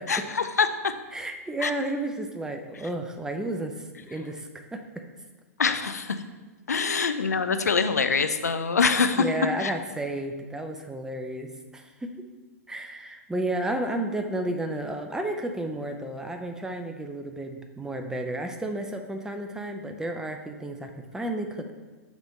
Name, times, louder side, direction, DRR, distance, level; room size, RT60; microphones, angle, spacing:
voice 1, 0.1-0.9 1.6-1.7 5.6-6.2 6.7-9.3 9.6-9.7, left 5 dB, 85° left, 10 dB, 0.5 m, -24 dB
voice 2, 1.1-5.0 6.8-7.1 9.2-12.3 12.7-21.7, right 1 dB, 5° right, 5 dB, 0.6 m, -32 dB
6.0 x 3.4 x 5.3 m, 1.3 s
hypercardioid pair, 105°, 8 cm